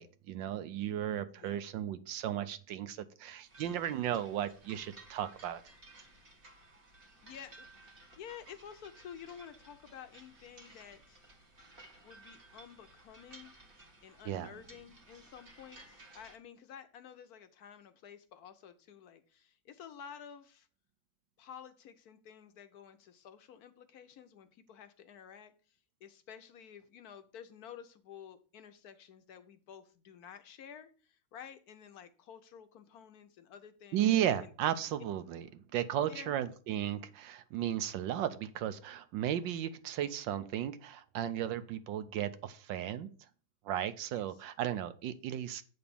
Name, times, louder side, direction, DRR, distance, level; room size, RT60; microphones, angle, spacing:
voice 1, 0.0-5.6 14.3-14.5 33.9-43.1 43.6-45.6, right 11 dB, 75° right, 1.3 m, -35 dB
sound 1, 3.4-16.4, right 2 dB, 30° right, 1.4 m, -57 dB
voice 2, 7.2-11.2 11.8-13.5 14.0-20.7 21.4-25.5 26.0-34.5 36.1-36.3 44.1-44.2, left 8 dB, 65° left, 1.0 m, -52 dB
8.6 x 4.0 x 6.9 m
omnidirectional pair, 2.1 m